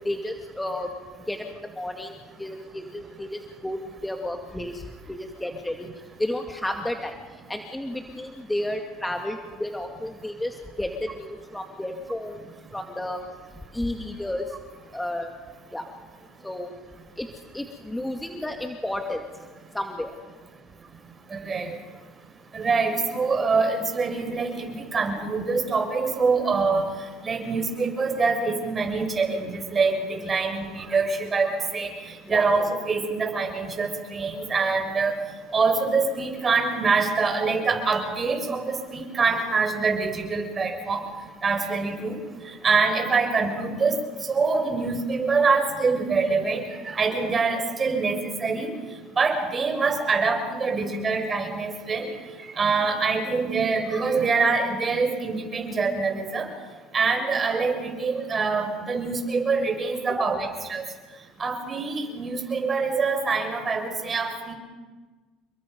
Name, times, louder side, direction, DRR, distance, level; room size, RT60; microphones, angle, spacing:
voice 1, 0.0-5.9 6.2-13.2 13.7-14.6 14.9-15.3 15.7-15.9 16.4-16.7 17.2-17.3 17.5-19.2 19.7-20.2 32.3-32.5 60.2-60.3, left 1 dB, 10° left, 3 dB, 2.3 m, -32 dB
voice 2, 21.3-21.8 22.5-26.9 27.2-31.9 32.3-35.2 35.5-41.0 41.4-42.2 42.5-44.0 44.3-48.7 49.2-52.1 52.4-56.5 56.9-60.8 61.4-64.5, right 4 dB, 30° right, 4 dB, 6.1 m, -25 dB
30.0 x 22.5 x 5.4 m, 1.4 s
supercardioid pair, 90°, 0 cm